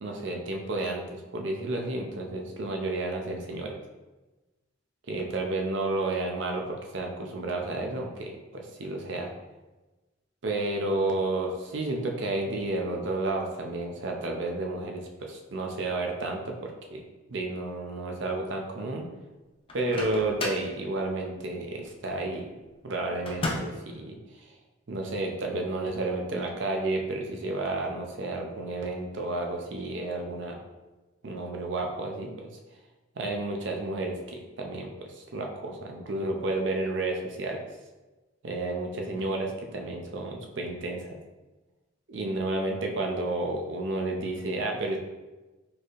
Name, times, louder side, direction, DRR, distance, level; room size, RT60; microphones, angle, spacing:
voice 1, 0.0-3.7 5.1-9.3 10.4-17.0 17.3-19.1 19.7-22.5 22.8-24.4 24.9-30.6 31.2-32.5 33.2-37.6 38.4-41.2 42.1-45.0, right 2 dB, 70° right, 1 dB, 0.6 m, -31 dB
Microwave oven, 19.7-20.7 23.3-23.9, left 2 dB, 30° left, 0.4 m, -33 dB
4.3 x 3.3 x 2.5 m, 1.1 s
head